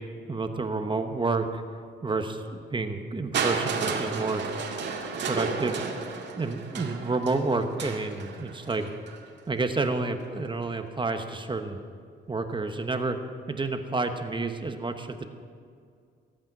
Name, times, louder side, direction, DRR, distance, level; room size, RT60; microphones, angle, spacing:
voice 1, 0.3-1.6 2.0-4.4 5.2-5.9 6.4-8.9 9.5-11.8 12.3-13.2 13.5-15.3, right 3 dB, 25° right, 7 dB, 1.2 m, -29 dB
Crushing, 3.3-9.2 10.2-10.3, right 5 dB, 65° right, 2.0 m, -32 dB
22.0 x 8.8 x 6.1 m, 2.2 s
cardioid pair, 90°, 20 cm